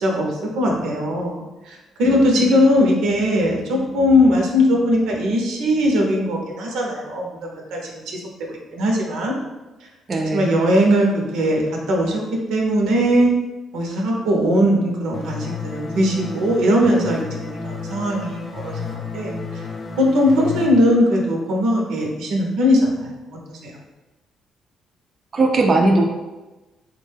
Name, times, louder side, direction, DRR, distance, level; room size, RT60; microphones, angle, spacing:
voice 1, 0.0-8.2 8.5-9.3 10.3-12.2 12.5-13.3 13.7-19.7 20.0-23.1 23.5-23.8, equal, 90° right, 0 dB, 0.7 m, -20 dB
voice 2, 10.1-10.5 25.3-26.0, right 2 dB, 40° right, 1 dB, 0.4 m, -18 dB
sound 1, 15.1-20.7, left 4 dB, 40° left, 0.4 m, -32 dB
3.6 x 2.2 x 3.3 m, 1.1 s
cardioid pair, 90°, 0 cm